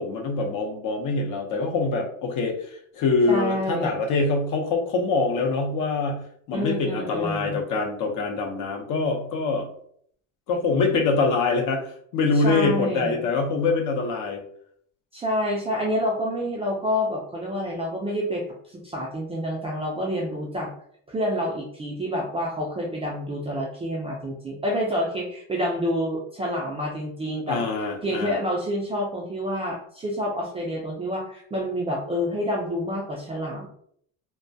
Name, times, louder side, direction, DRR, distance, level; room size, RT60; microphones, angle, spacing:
voice 1, 0.0-9.7 10.5-11.8 12.1-14.4 27.5-28.3, left 3 dB, 50° left, 3 dB, 0.7 m, -24 dB
voice 2, 3.3-4.0 6.5-7.6 12.3-13.2 15.1-20.7 21.1-27.6 28.0-33.7, equal, 15° right, -2 dB, 0.3 m, -28 dB
2.2 x 2.1 x 2.6 m, 0.63 s
supercardioid pair, 105°, 41 cm